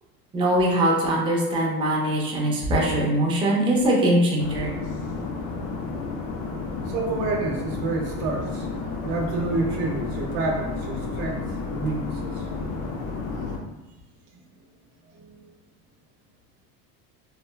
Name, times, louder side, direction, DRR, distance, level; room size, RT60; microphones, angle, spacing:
voice 1, 0.3-4.7, right 1 dB, 10° right, -4 dB, 0.4 m, -22 dB
sound 1, 4.4-13.6, left 4 dB, 45° left, 0.5 m, -31 dB
voice 2, 6.9-8.7 9.0-12.5 14.3-14.4 15.1-15.4, right 3 dB, 75° right, 1 dB, 0.8 m, -29 dB
3.0 x 2.1 x 2.2 m, 1.0 s
supercardioid pair, 105°, 46 cm